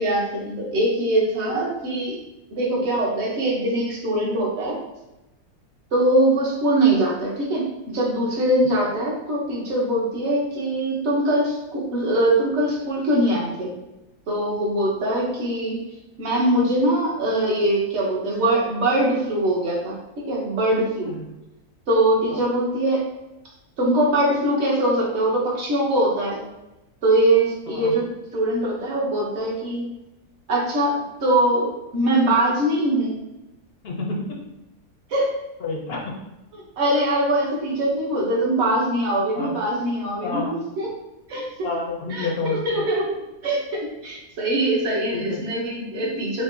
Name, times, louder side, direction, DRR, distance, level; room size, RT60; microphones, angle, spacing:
voice 1, 0.0-2.2 2.5-4.8 5.9-13.8 14.3-15.8 16.2-20.0 20.2-21.1 21.9-23.1 23.8-26.4 27.0-28.0 28.3-29.9 30.5-33.1 35.1-35.3 36.8-40.9 41.3-41.7 42.1-43.0 43.4-46.4, right 1 dB, 50° right, -4 dB, 1.1 m, -22 dB
voice 2, 33.8-34.4 35.6-36.1 39.4-39.6 40.2-40.6 41.6-42.8 45.1-45.4, left 3 dB, 55° left, -1 dB, 0.7 m, -29 dB
5.2 x 2.1 x 2.6 m, 0.94 s
omnidirectional pair, 1.7 m